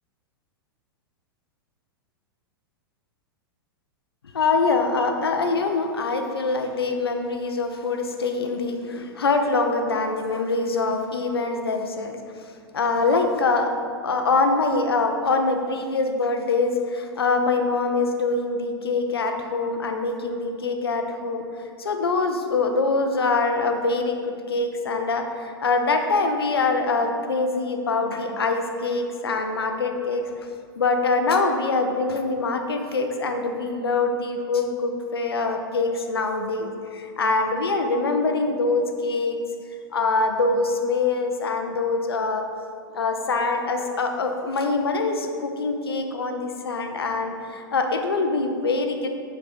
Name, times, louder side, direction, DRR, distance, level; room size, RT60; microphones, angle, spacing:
voice 1, 4.3-12.2 12.7-13.7 14.0-21.4 21.8-30.5 30.8-39.4 39.9-42.4 42.9-49.1, left 3 dB, 80° left, 5 dB, 0.8 m, -24 dB
8.3 x 4.3 x 5.3 m, 2.2 s
figure-of-eight pair, 100°, 13 cm